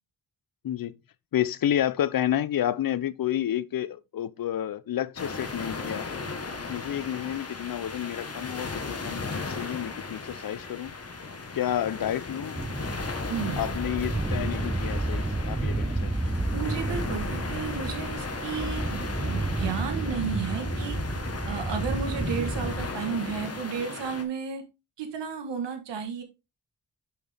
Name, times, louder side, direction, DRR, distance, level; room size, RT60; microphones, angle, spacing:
voice 1, 0.6-1.0 1.3-6.2 6.7-10.9 11.5-12.6 13.6-16.4, left 11 dB, 55° left, 0.6 m, -30 dB
sound 1, 5.2-24.2, left 4 dB, 35° left, 1.4 m, -36 dB
sound 2, 12.6-22.9, right 2 dB, 10° right, 0.5 m, -31 dB
voice 2, 13.3-13.7 16.5-21.0 21.5-24.6 25.0-26.2, right 7 dB, 90° right, 1.4 m, -33 dB
6.3 x 5.5 x 3.5 m
cardioid pair, 50°, 41 cm